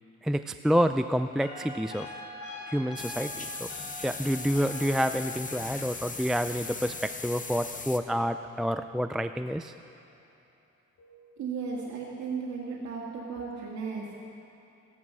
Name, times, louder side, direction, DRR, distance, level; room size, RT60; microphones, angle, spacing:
voice 1, 0.2-2.1 2.7-3.7 4.0-9.7, equal, ahead, 9 dB, 0.3 m, -28 dB
sound 1, 1.4-8.6 11.0-11.3, left 1 dB, 70° left, 3.2 m, -45 dB
sound 2, 3.0-8.0, left 4 dB, 25° left, 0.9 m, -39 dB
voice 2, 11.4-14.1, right 5 dB, 70° right, -3 dB, 2.0 m, -35 dB
15.0 x 11.0 x 6.2 m, 2.8 s
cardioid pair, 90°, 30 cm